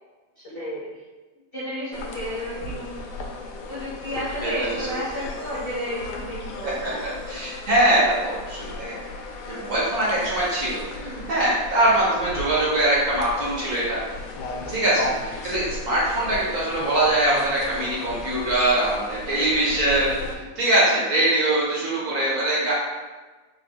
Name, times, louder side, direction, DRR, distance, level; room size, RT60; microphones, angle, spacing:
voice 1, 0.4-0.9 1.5-3.1 3.7-7.2 10.9-11.3, equal, 50° left, -9 dB, 0.6 m, -32 dB
sound 1, 1.9-20.3, left 3 dB, 75° left, 1.0 m, -36 dB
voice 2, 4.4-4.8 5.2-5.3 7.3-8.9 9.4-10.8 11.3-14.0 14.7-20.1 20.6-22.7, right 1 dB, 50° right, -6 dB, 1.1 m, -22 dB
4.0 x 2.3 x 3.4 m, 1.3 s
omnidirectional pair, 2.0 m